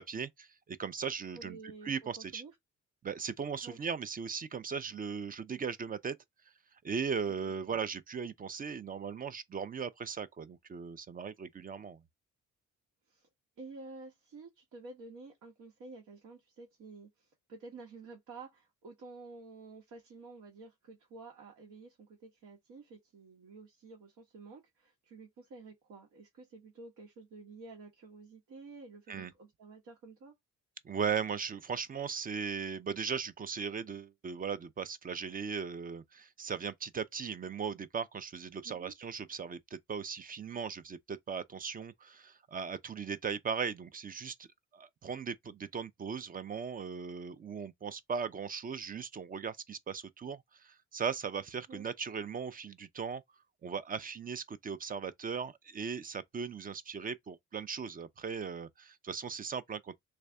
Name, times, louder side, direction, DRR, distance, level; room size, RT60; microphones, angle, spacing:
voice 1, 0.0-1.6 1.8-2.4 3.0-6.1 6.8-12.0 29.1-29.3 30.8-44.5 44.7-53.2 53.6-60.0, right 6 dB, 30° right, 0.4 m, -38 dB
voice 2, 1.3-2.5 3.6-3.8 7.3-7.4 13.1-13.3 13.6-30.3 38.6-38.9 51.7-51.8, right 3 dB, 80° right, 1.3 m, -51 dB
3.3 x 2.6 x 3.4 m
cardioid pair, 90°, 30 cm